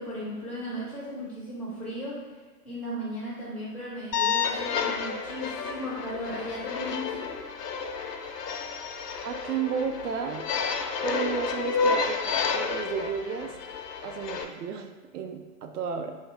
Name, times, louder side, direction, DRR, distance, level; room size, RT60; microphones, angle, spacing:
voice 1, 0.0-2.3 2.6-7.3, equal, 5° left, -9 dB, 0.4 m, -36 dB
sound 1, 4.1-14.4, left 5 dB, 80° left, 0.6 m, -30 dB
voice 2, 9.2-10.5 11.0-13.5 14.0-16.2, right 6 dB, 70° right, 5 dB, 0.6 m, -33 dB
3.1 x 2.4 x 4.2 m, 1.4 s
figure-of-eight pair, 110°, 48 cm